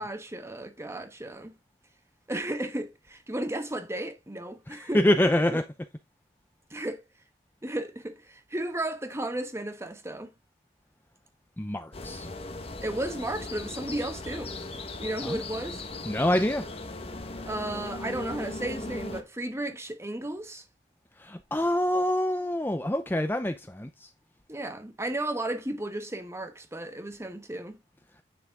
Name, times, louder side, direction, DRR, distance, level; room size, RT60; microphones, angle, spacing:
voice 1, 0.0-1.5 2.3-5.0 5.5-5.6 6.7-7.0 7.6-10.3 12.8-14.5 15.0-15.8 17.5-20.6 24.5-27.8, right 1 dB, 15° right, 1.2 m, -34 dB
voice 2, 4.7-5.6 11.6-12.3 15.2-15.4 16.0-16.6 21.2-24.1, left 1 dB, 10° left, 0.6 m, -26 dB
sound 1, 11.9-19.2, left 2 dB, 30° left, 1.2 m, -38 dB
9.8 x 6.1 x 3.5 m
head